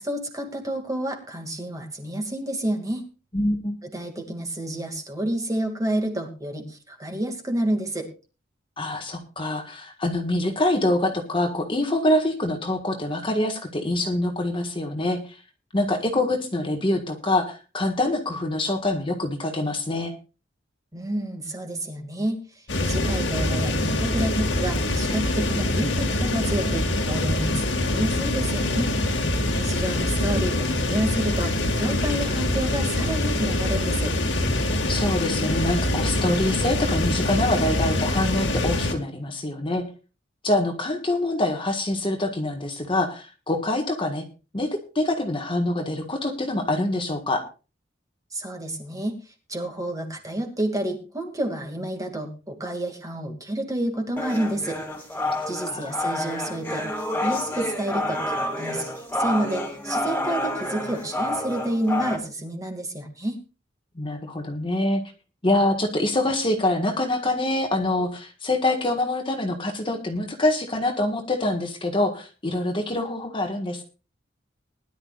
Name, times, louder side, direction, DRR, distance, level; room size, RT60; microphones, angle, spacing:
voice 1, 0.0-3.0 3.8-8.1 20.9-22.4 22.8-28.9 29.5-34.2 48.3-49.1 49.5-54.8 55.5-56.9 57.1-63.4, right 1 dB, 20° right, 3 dB, 2.4 m, -29 dB
voice 2, 3.3-3.8 8.8-15.4 15.7-20.1 29.2-29.3 34.9-39.9 40.4-44.2 44.5-47.4 55.2-56.1 63.9-65.0 65.4-73.8, left 1 dB, 30° left, 4 dB, 1.7 m, -25 dB
sound 1, 22.7-38.9, left 1 dB, 70° left, 2.3 m, -24 dB
sound 2, 54.2-62.2, left 1 dB, 10° left, 2.9 m, -29 dB
20.5 x 11.5 x 2.5 m, 0.32 s
head